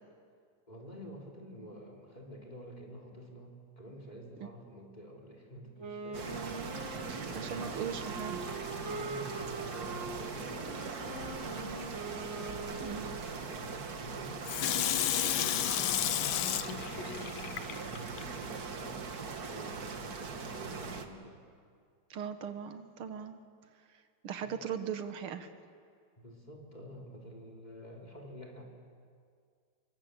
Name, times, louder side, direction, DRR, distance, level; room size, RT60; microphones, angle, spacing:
voice 1, 0.7-7.9 9.0-14.6 15.2-17.5 17.8-21.4 24.4-24.6 26.2-28.6, equal, 20° left, 0 dB, 4.1 m, -50 dB
Wind instrument woodwind instrument, 5.8-13.4, right 2 dB, 10° right, 3.6 m, -43 dB
sound 1, 6.1-21.1, right 5 dB, 50° right, 2.0 m, -41 dB
voice 2, 7.1-8.4 12.8-13.1 22.1-23.4 24.2-25.5, right 8 dB, 85° right, 9 dB, 2.2 m, -39 dB
Water tap faucet / Sink (filling or washing), 14.4-18.2 18.7-18.8, left 11 dB, 70° left, 1.5 m, -32 dB
28.5 x 23.5 x 8.4 m, 2.2 s
omnidirectional pair, 2.3 m